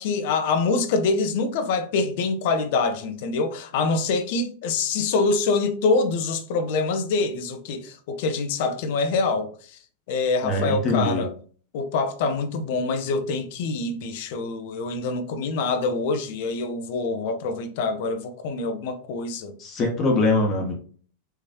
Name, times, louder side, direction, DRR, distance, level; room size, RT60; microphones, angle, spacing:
voice 1, 0.0-9.8 10.1-11.3 11.7-19.6, left 4 dB, 50° left, 0.8 m, -25 dB
voice 2, 10.4-11.2 19.6-20.7, left 2 dB, 30° left, 1.2 m, -22 dB
5.7 x 3.1 x 2.8 m
figure-of-eight pair, 90°, 0 cm